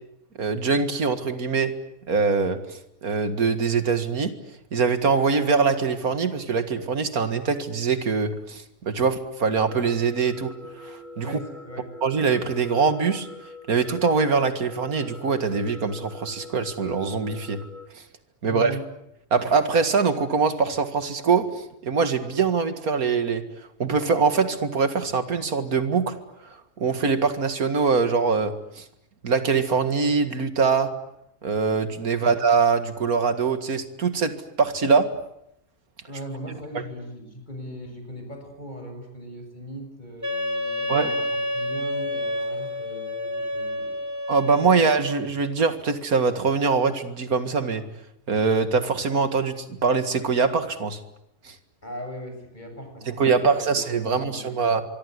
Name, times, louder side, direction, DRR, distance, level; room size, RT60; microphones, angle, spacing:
voice 1, 0.4-1.7 2.1-4.3 4.7-10.5 10.8-11.4 12.0-13.3 13.7-17.6 18.4-18.8 19.3-21.5 21.8-23.4 23.8-26.2 26.8-28.8 29.2-30.9 31.4-35.1 36.7-36.8 40.9-41.1 44.3-47.8 48.3-51.0 51.4-51.5 53.1-54.8, right 5 dB, 85° right, 10 dB, 2.4 m, -23 dB
sound 1, 9.5-17.9, left 1 dB, 30° right, 2.2 m, -43 dB
voice 2, 11.2-11.9 18.4-18.8 32.2-32.3 36.1-44.0 51.8-53.7 54.0-54.8, equal, 30° left, 5 dB, 7.6 m, -39 dB
Wind instrument woodwind instrument, 40.2-45.3, left 1 dB, 10° right, 2.8 m, -29 dB
25.0 x 23.5 x 9.7 m, 0.79 s
omnidirectional pair, 1.5 m